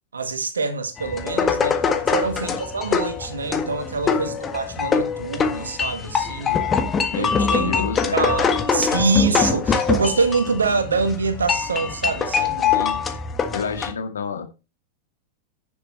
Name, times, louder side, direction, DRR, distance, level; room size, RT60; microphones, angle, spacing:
voice 1, 0.1-1.8 2.1-6.6 7.2-7.8 8.1-12.8, right 4 dB, 75° right, 1.7 m, -25 dB
sound 1, 1.0-13.9, left 6 dB, 20° left, 1.6 m, -23 dB
voice 2, 7.1-8.3 12.7-13.0 13.5-14.5, left 6 dB, 70° left, 2.0 m, -30 dB
10.5 x 7.0 x 4.3 m
figure-of-eight pair, 90°, 0 cm